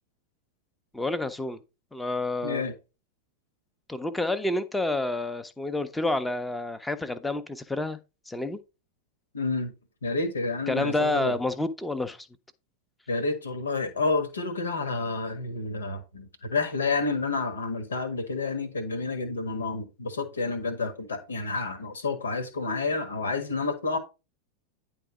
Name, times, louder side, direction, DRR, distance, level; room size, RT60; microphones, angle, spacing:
voice 1, 0.9-1.6 1.9-2.6 3.9-8.0 8.3-8.6 10.7-12.3, left 2 dB, 5° left, 0.8 m, -29 dB
voice 2, 2.4-2.7 9.3-9.7 10.0-11.4 13.1-24.0, left 3 dB, 70° left, 1.5 m, -29 dB
10.0 x 3.6 x 4.8 m
figure-of-eight pair, 90°, 0 cm